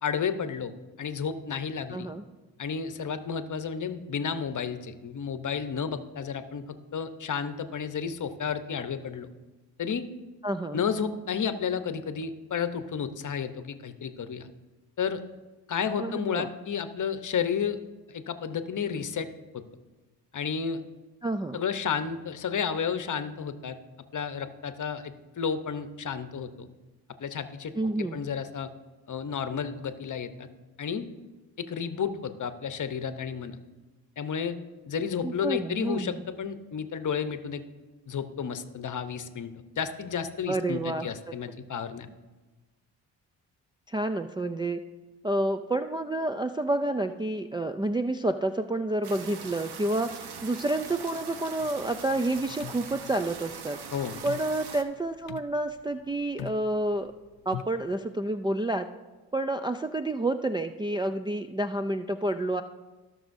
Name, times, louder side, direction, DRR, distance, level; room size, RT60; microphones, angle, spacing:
voice 1, 0.0-2.1 2.6-6.6 6.9-9.3 9.8-10.1 10.7-14.5 15.0-15.2 15.7-17.8 18.1-19.3 19.5-19.6 20.3-20.8 21.5-23.8 24.1-26.7 27.2-27.7 28.0-28.7 29.1-30.5 30.8-31.1 31.6-33.6 34.2-34.6 34.8-37.6 38.1-42.1 53.9-54.2, left 7 dB, 45° left, 10 dB, 0.9 m, -32 dB
voice 2, 1.9-2.2 10.4-10.8 16.0-16.5 21.2-21.6 27.8-28.2 35.2-36.2 40.5-41.1 43.9-44.8 45.2-53.8 54.2-57.1 57.5-58.9 59.3-62.6, right 2 dB, 10° right, 5 dB, 0.3 m, -29 dB
sound 1, 49.0-54.8, right 6 dB, 65° right, 1.0 m, -42 dB
sound 2, 51.6-57.9, left 11 dB, 85° left, 0.6 m, -44 dB
17.5 x 6.2 x 2.6 m, 1.2 s
supercardioid pair, 60°, 43 cm